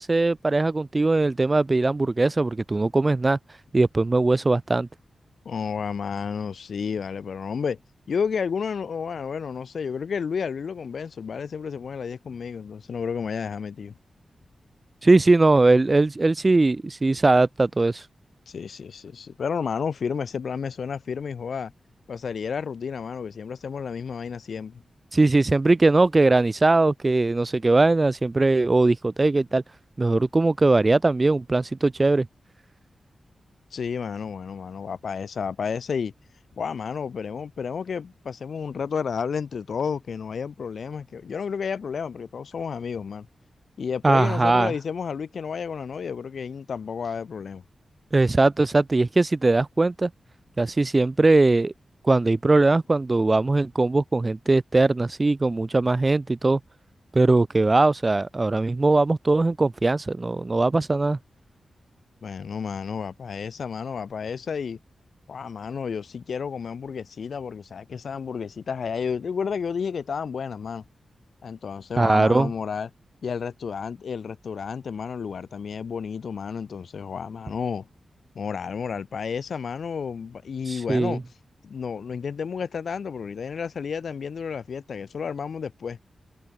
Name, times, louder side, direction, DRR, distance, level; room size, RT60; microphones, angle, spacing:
voice 1, 0.0-3.4 3.7-4.9 15.0-18.0 25.1-29.6 30.0-32.3 44.0-44.7 48.1-50.1 50.6-51.7 52.0-56.6 57.1-61.2 72.0-72.5 80.9-81.2, right 2 dB, 25° right, 2.0 m, -20 dB
voice 2, 5.4-7.8 8.1-13.9 18.5-21.7 22.1-24.8 33.7-36.1 36.6-43.3 43.8-47.6 62.2-64.8 65.3-70.8 71.4-72.9 73.2-77.9 78.3-81.2 81.6-86.0, left 6 dB, 65° left, 6.4 m, -31 dB
wide cardioid pair, 160°, 0 cm